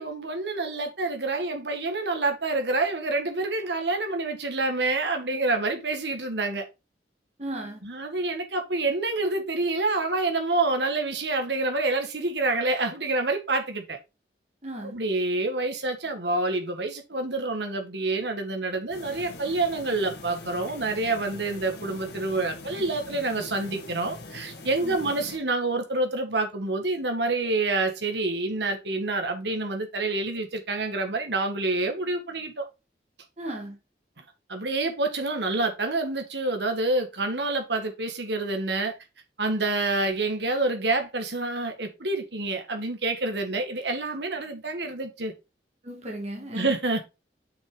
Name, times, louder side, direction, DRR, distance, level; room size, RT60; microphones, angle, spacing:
voice 1, 0.0-6.6 7.8-14.0 14.8-32.7 34.5-38.9 39.4-45.3 46.5-47.0, right 2 dB, 75° right, 2.0 m, -27 dB
voice 2, 7.4-7.8 14.6-15.0 24.8-25.1 33.4-33.8 45.8-46.8, right 1 dB, 35° right, 2.2 m, -36 dB
sound 1, 18.9-25.4, left 2 dB, 65° left, 1.9 m, -43 dB
7.0 x 6.1 x 4.0 m
head